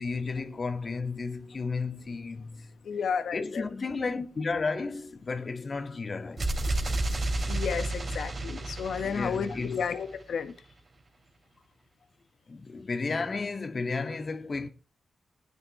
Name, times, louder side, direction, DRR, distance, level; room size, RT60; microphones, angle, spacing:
voice 1, 0.0-2.7 3.3-6.5 9.0-9.8 12.5-14.7, left 4 dB, 50° left, 1.9 m, -33 dB
voice 2, 2.8-3.6 7.5-10.5, left 6 dB, 75° left, 1.5 m, -32 dB
sound 1, 6.4-10.2, right 2 dB, 50° right, 3.1 m, -31 dB
19.0 x 9.8 x 3.2 m
cardioid pair, 50°, 0 cm